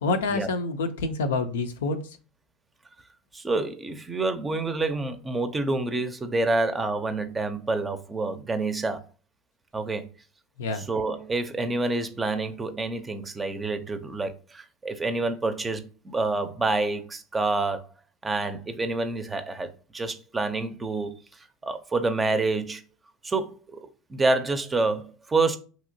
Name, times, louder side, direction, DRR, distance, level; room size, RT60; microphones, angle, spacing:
voice 1, 0.0-2.0 10.6-10.9, left 3 dB, 85° left, 0.4 m, -27 dB
voice 2, 3.3-9.0 9.7-10.1 10.8-17.8 18.2-21.1 21.6-22.8 23.2-23.8 24.1-25.6, right 3 dB, 20° right, 0.5 m, -28 dB
2.9 x 2.8 x 2.6 m
hypercardioid pair, 90°, 0 cm